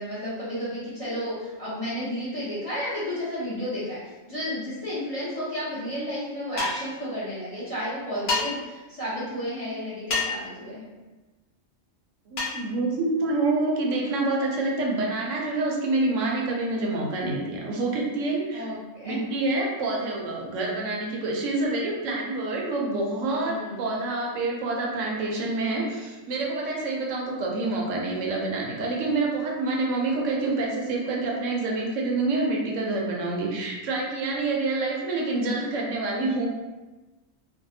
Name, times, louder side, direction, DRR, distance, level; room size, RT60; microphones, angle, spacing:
voice 1, 0.0-10.9 18.5-19.3 23.4-23.9, equal, 30° left, -10 dB, 0.8 m, -32 dB
sound 1, 6.6-6.9 8.3-8.4 10.1-10.5 12.4-12.6, left 3 dB, 70° left, 1.0 m, -26 dB
voice 2, 12.3-18.6 19.0-36.5, right 2 dB, 80° right, -2 dB, 0.9 m, -27 dB
2.6 x 2.2 x 2.6 m, 1.2 s
omnidirectional pair, 1.3 m